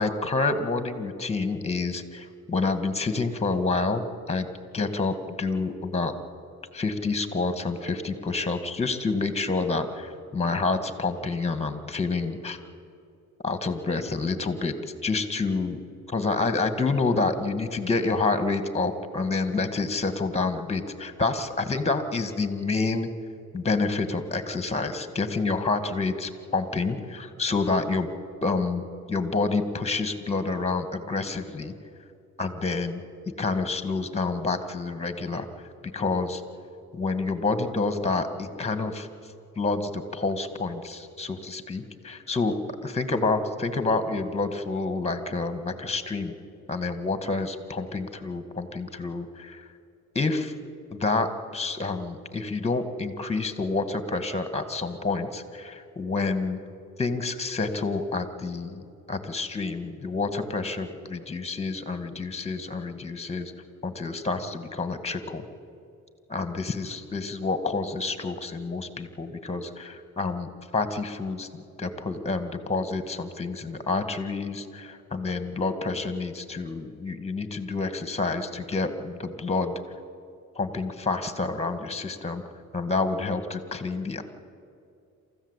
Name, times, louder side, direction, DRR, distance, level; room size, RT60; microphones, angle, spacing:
voice 1, 0.0-4.5 4.7-6.1 6.7-12.6 13.4-14.7 15.0-15.8 16.1-23.1 23.5-28.1 28.4-28.8 29.1-31.7 32.4-33.0 33.4-35.5 35.9-36.4 36.9-39.1 39.6-42.5 42.8-46.3 46.7-49.7 50.2-50.5 50.9-51.3 51.5-56.6 57.0-63.5 63.8-65.4 66.3-79.7 80.6-82.4 82.7-84.2, left 3 dB, 20° left, 9 dB, 1.9 m, -28 dB
27.0 x 14.5 x 8.3 m, 2.5 s
cardioid pair, 90°, 30 cm